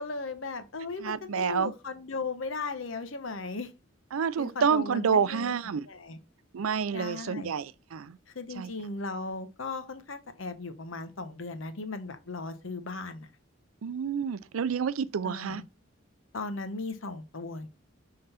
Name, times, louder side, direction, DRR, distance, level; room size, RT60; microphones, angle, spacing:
voice 1, 0.0-3.7 4.4-5.5 5.9-6.2 6.9-7.5 8.3-13.3 15.2-15.6 16.3-17.7, left 3 dB, 70° left, 0.9 m, -37 dB
voice 2, 1.0-1.7 4.1-5.9 6.5-8.2 8.5-8.7 13.8-15.6, right 6 dB, 85° right, 0.4 m, -28 dB
5.4 x 3.8 x 5.7 m
head